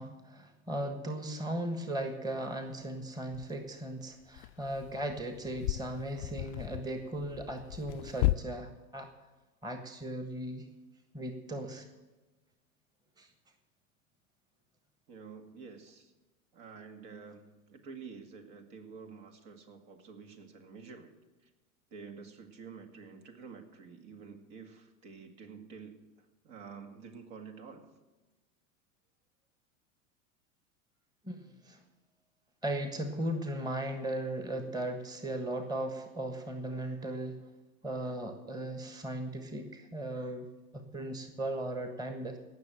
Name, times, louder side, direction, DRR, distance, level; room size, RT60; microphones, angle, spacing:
voice 1, 0.0-9.1 9.6-10.7 11.1-11.9 13.2-13.3 31.2-31.8 32.6-37.4 37.8-42.4, right 1 dB, 10° right, 6 dB, 1.3 m, -37 dB
sound 1, 2.4-2.5 3.3-3.5 4.2-8.4, left 19 dB, 50° left, 0.5 m, -35 dB
voice 2, 15.1-16.1 16.5-21.1 21.9-26.0 26.4-27.9, right 5 dB, 55° right, 5 dB, 2.3 m, -49 dB
17.5 x 6.5 x 7.6 m, 1.2 s
hypercardioid pair, 95°, 43 cm